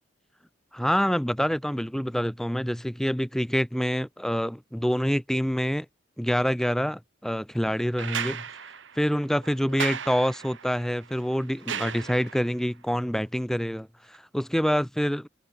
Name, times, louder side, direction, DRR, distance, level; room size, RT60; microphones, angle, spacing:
voice 1, 0.7-5.9 6.2-8.4 8.9-15.3, equal, ahead, 1.3 m, -26 dB
sound 1, 8.0-12.6 14.1-14.2, right 7 dB, 70° right, 1.4 m, -36 dB
head